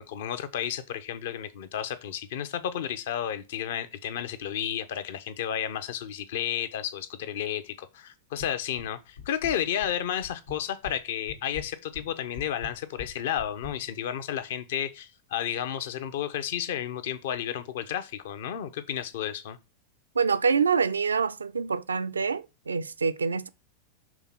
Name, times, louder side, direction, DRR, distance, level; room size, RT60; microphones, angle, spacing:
voice 1, 0.0-19.6, left 10 dB, 60° left, 0.8 m, -32 dB
sound 1, 8.4-8.9 9.2-9.9 10.2-11.0 11.3-13.8, left 5 dB, 80° left, 1.5 m, -42 dB
voice 2, 20.2-23.5, right 5 dB, 75° right, 0.4 m, -26 dB
6.1 x 3.5 x 5.7 m
figure-of-eight pair, 90°, 0 cm